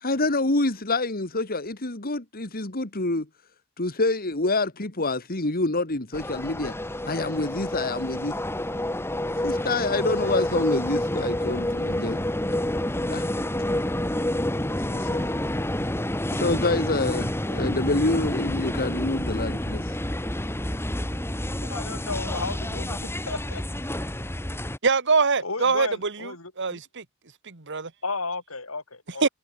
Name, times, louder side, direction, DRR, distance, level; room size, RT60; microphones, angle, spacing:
voice 1, 0.0-3.3 3.8-6.8 7.0-8.3 9.4-12.2 13.1-13.3 14.7-15.4 16.3-20.0, left 2 dB, 45° left, 2.5 m, -27 dB
sound 1, 6.1-24.8, left 1 dB, 10° left, 2.4 m, -28 dB
voice 2, 21.6-23.6 25.4-26.8 28.0-29.2, left 3 dB, 80° left, 7.3 m, -34 dB
voice 3, 24.8-27.0 27.5-27.9 29.2-29.3, right 4 dB, 60° right, 2.0 m, -24 dB
head